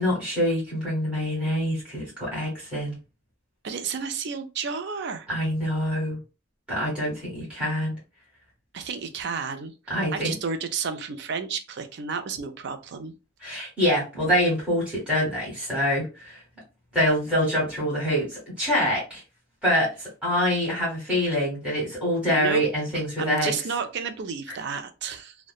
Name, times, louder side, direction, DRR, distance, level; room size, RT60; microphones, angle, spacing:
voice 1, 0.0-3.0 5.3-6.2 6.7-7.9 9.9-10.3 13.4-16.4 16.9-19.2 19.6-23.5, equal, 5° right, -7 dB, 1.5 m, -25 dB
voice 2, 3.6-5.3 8.7-9.7 10.1-13.1 22.2-22.6 23.2-25.4, right 5 dB, 55° right, 8 dB, 0.4 m, -31 dB
2.8 x 2.1 x 2.3 m, 0.30 s
head